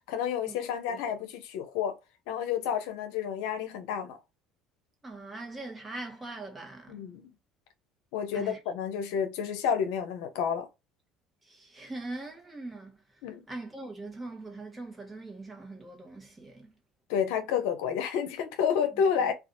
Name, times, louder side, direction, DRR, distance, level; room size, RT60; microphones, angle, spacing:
voice 1, 0.1-1.9 2.3-4.2 6.9-7.3 8.1-10.7 13.2-13.5 17.1-19.3, left 7 dB, 75° left, 0.6 m, -30 dB
voice 2, 5.0-7.0 8.3-8.6 11.5-13.0 13.5-16.7, right 2 dB, 20° right, 1.0 m, -41 dB
2.5 x 2.4 x 2.6 m
hypercardioid pair, 75°, 0 cm